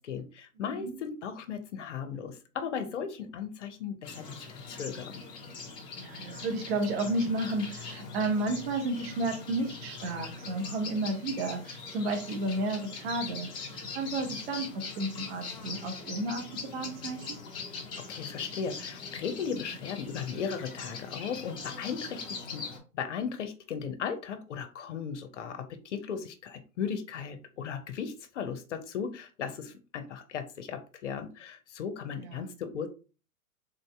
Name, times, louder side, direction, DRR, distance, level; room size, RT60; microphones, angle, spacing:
voice 1, 0.0-5.2 18.0-22.6 22.9-32.9, left 7 dB, 50° left, 8 dB, 0.7 m, -37 dB
sound 1, 4.0-22.8, left 4 dB, 10° left, 0.5 m, -42 dB
voice 2, 6.0-14.7 15.0-16.4 16.7-17.4 32.2-32.5, right 2 dB, 40° right, 3 dB, 1.1 m, -32 dB
3.5 x 2.7 x 3.3 m, 0.34 s
figure-of-eight pair, 110°, 45 cm